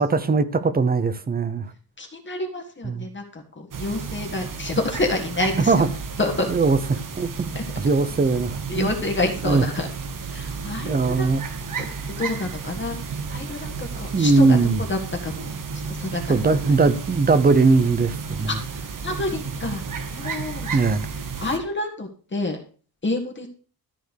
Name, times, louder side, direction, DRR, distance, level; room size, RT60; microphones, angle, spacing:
voice 1, 0.0-1.7 2.8-3.1 5.7-5.9 6.5-7.5 7.8-8.9 9.4-9.6 10.8-11.4 14.1-14.8 16.3-18.6 20.7-21.1, right 4 dB, 25° right, 0.7 m, -20 dB
voice 2, 2.0-5.9 6.2-6.5 7.5-7.8 8.7-9.9 10.3-11.3 11.8-15.5 15.9-16.8 18.5-18.6 19.0-19.9 20.1-20.7 21.4-22.6 23.0-23.5, left 2 dB, 30° left, 1.6 m, -28 dB
sound 1, 3.7-21.6, right 5 dB, 55° right, 1.2 m, -32 dB
13.5 x 4.5 x 6.4 m
wide cardioid pair, 180°, 38 cm